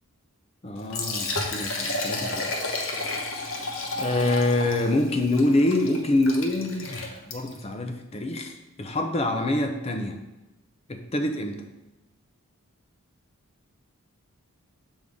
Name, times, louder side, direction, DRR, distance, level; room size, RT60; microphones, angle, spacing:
voice 1, 0.6-2.5 3.3-3.5 4.0-10.2 10.9-11.6, left 2 dB, 25° left, 5 dB, 0.5 m, -26 dB
Liquid, 0.8-7.6, left 2 dB, 65° left, 1.0 m, -32 dB
6.4 x 5.4 x 3.6 m, 0.98 s
head